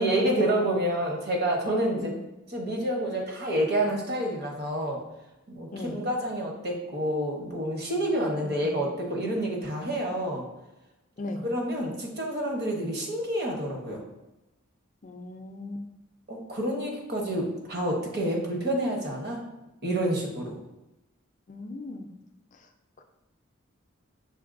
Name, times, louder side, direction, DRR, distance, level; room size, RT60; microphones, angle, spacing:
voice 1, 0.0-2.1 2.5-5.0 5.5-10.4 11.4-14.0 16.3-19.4 19.8-20.6, right 1 dB, 50° right, 0 dB, 0.9 m, -28 dB
voice 2, 8.3-8.8 11.2-11.4 15.0-15.8 21.5-22.1, left 2 dB, 35° left, 5 dB, 0.4 m, -37 dB
5.9 x 3.4 x 2.6 m, 0.95 s
head